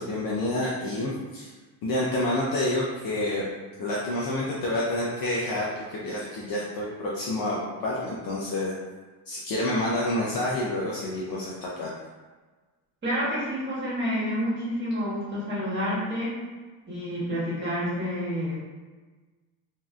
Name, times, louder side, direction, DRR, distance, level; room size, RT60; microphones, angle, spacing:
voice 1, 0.0-1.5 1.8-3.5 3.8-8.7 9.3-11.9, left 1 dB, 50° left, -5 dB, 0.6 m, -28 dB
voice 2, 13.0-16.3 16.9-18.5, equal, 25° right, -8 dB, 1.5 m, -29 dB
3.0 x 2.8 x 2.4 m, 1.3 s
cardioid pair, 120°, 47 cm